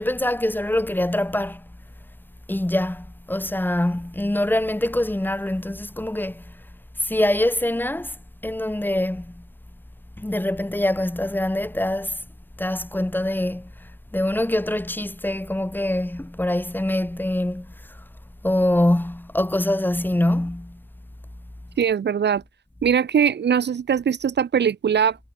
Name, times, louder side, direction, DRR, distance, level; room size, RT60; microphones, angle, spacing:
voice 1, 0.0-1.7 2.5-6.6 7.0-8.2 8.4-9.5 10.2-12.2 12.6-18.0 18.4-20.8, left 1 dB, 5° left, 2.3 m, -24 dB
voice 2, 21.8-22.4 22.8-25.2, right 7 dB, 35° right, 0.8 m, -21 dB
cardioid pair, 90°, 30 cm